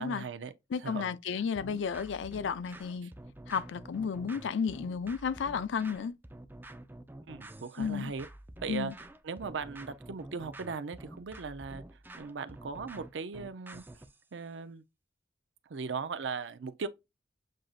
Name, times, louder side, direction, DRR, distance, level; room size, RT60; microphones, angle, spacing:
voice 1, 0.0-0.5 0.8-1.5 3.0-3.1 7.3-8.3 8.6-8.9 9.2-11.8 12.2-13.8 14.3-14.8 15.7-16.9, right 5 dB, 80° right, 0.5 m, -38 dB
voice 2, 0.7-3.1 3.5-6.1 7.8-8.1 8.7-8.9, left 6 dB, 85° left, 0.4 m, -33 dB
sound 1, 1.6-14.2, right 1 dB, 10° right, 0.4 m, -48 dB
7.5 x 2.6 x 2.4 m
head